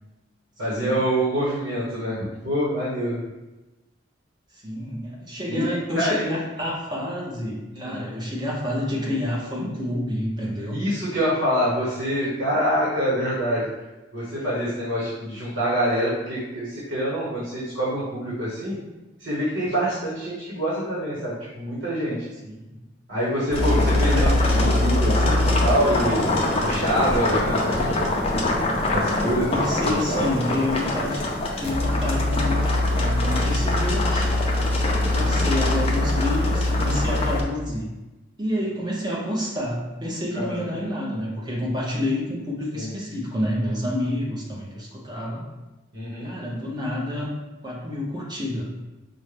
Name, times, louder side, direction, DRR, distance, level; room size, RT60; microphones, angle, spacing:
voice 1, 0.6-2.2 2.4-3.2 5.5-6.2 7.7-8.0 10.7-13.7 14.1-18.8 19.2-22.2 23.1-26.3 26.6-28.0 28.9-29.5 30.1-30.3 34.9-35.1 40.3-40.9 42.7-42.9 45.9-46.3, equal, 75° right, -8 dB, 1.1 m, -26 dB
voice 2, 4.5-10.8 22.4-22.5 24.0-24.3 29.0-34.3 35.1-37.9 38.4-45.4 46.2-47.3 47.6-48.6, left 1 dB, 20° right, -4 dB, 0.8 m, -29 dB
sound 1, 23.5-37.4, left 1 dB, 30° left, 0.5 m, -22 dB
5.3 x 2.2 x 3.3 m, 1.1 s
head